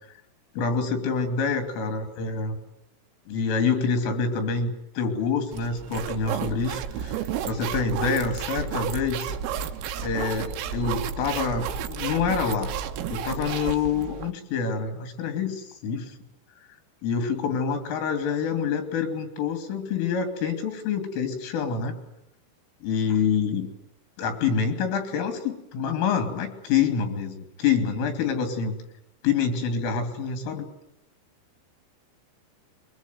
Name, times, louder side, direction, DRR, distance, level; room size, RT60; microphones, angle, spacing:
voice 1, 0.6-2.6 3.3-9.4 10.0-12.7 13.1-16.1 17.0-22.0 22.8-23.7 24.2-28.8 29.2-30.7, left 6 dB, 75° left, 7 dB, 5.3 m, -27 dB
sound 1, 5.5-14.3, right 8 dB, 90° right, 4.0 m, -32 dB
24.0 x 23.0 x 9.3 m, 0.82 s
omnidirectional pair, 5.9 m